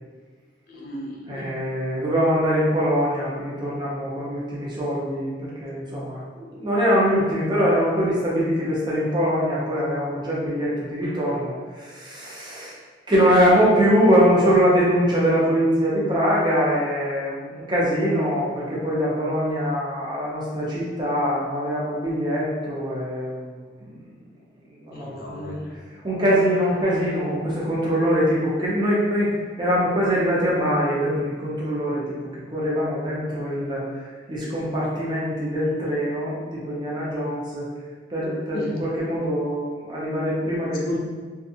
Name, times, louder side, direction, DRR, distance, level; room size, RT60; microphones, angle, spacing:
voice 1, 0.7-1.5 24.9-25.6 38.5-38.7 40.9-41.0, left 1 dB, 50° left, -2 dB, 0.4 m, -33 dB
voice 2, 1.3-12.8 13.1-24.1 24.7-25.6 26.0-32.2 32.5-37.7 38.1-40.8, equal, 25° right, -6 dB, 0.6 m, -23 dB
2.5 x 2.4 x 2.7 m, 1.5 s
head